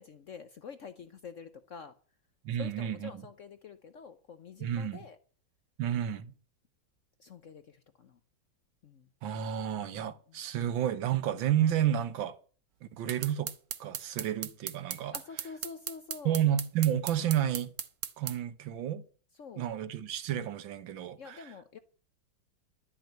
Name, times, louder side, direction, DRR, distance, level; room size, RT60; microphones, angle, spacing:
voice 1, 0.0-2.0 2.6-5.2 7.2-8.2 8.8-9.1 10.0-10.4 15.1-16.4 19.3-19.6 21.2-21.8, left 6 dB, 60° left, 0.8 m, -47 dB
voice 2, 2.5-3.1 4.6-5.0 5.8-6.3 9.2-12.4 12.8-13.5 13.8-15.1 16.3-17.7 18.2-19.0 19.6-21.4, right 10 dB, 85° right, 1.7 m, -31 dB
sound 1, 13.1-18.4, right 9 dB, 70° right, 1.5 m, -37 dB
12.0 x 6.3 x 9.0 m
omnidirectional pair, 2.1 m